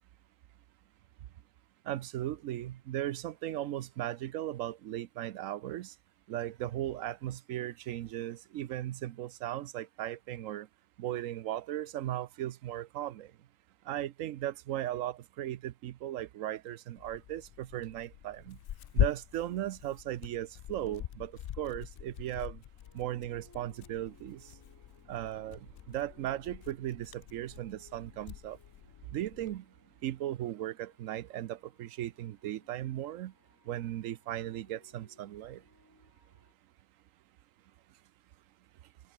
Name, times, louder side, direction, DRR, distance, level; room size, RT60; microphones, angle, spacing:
voice 1, 1.9-5.9 6.3-10.7 11.0-13.3 13.9-18.6 18.9-22.6 22.9-24.5 25.1-28.6 29.1-29.6 30.0-33.3 33.7-35.6, right 13 dB, 90° right, 1.0 m, -37 dB
Tearing, 17.0-29.6, left 11 dB, 60° left, 0.6 m, -40 dB
sound 1, 18.1-30.3, left 1 dB, 90° left, 7.8 m, -71 dB
sound 2, 22.8-36.5, equal, 15° left, 5.4 m, -66 dB
omnidirectional pair, 1.3 m